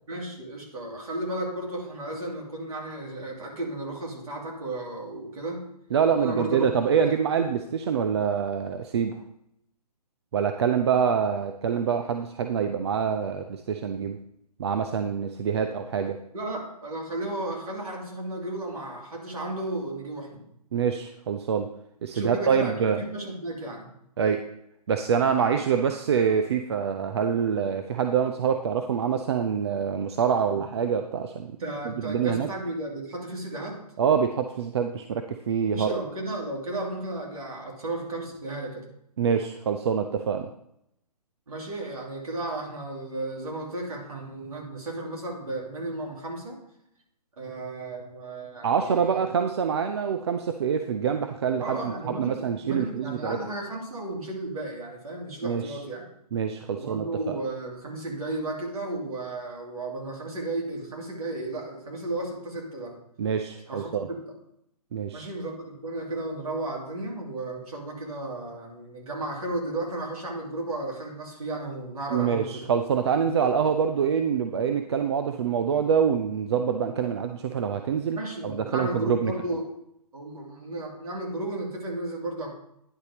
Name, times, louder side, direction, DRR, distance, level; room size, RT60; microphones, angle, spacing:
voice 1, 0.1-5.7 6.2-6.7 7.1-7.2 16.3-20.4 22.1-23.9 31.6-33.8 35.6-38.9 41.5-46.6 47.4-49.2 51.6-56.0 56.7-63.0 63.7-64.2 65.1-72.7 78.1-79.7 80.1-82.5, right 2 dB, 60° right, -1 dB, 2.6 m, -34 dB
voice 2, 5.9-9.2 10.3-14.2 14.6-16.2 20.7-21.7 22.0-23.0 24.2-24.4 24.9-31.5 31.8-32.5 34.0-35.9 39.2-40.5 48.6-53.4 55.4-55.8 56.3-57.4 63.2-64.1 64.9-65.3 72.1-79.3, right 7 dB, 40° right, 6 dB, 0.5 m, -25 dB
10.0 x 4.1 x 5.0 m, 0.76 s
hypercardioid pair, 145°, 21 cm